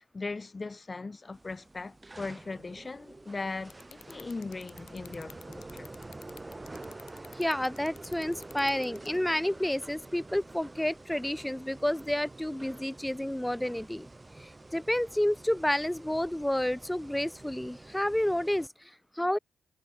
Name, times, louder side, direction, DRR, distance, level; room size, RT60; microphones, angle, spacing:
voice 1, 0.0-5.9, left 3 dB, 35° left, 5.6 m, -39 dB
sound 1, 1.3-18.7, right 2 dB, 25° right, 4.1 m, -48 dB
sound 2, 3.7-9.2, left 10 dB, 70° left, 2.4 m, -50 dB
voice 2, 7.3-14.1 14.4-19.4, left 1 dB, 5° left, 2.3 m, -30 dB
hypercardioid pair, 45°, 0 cm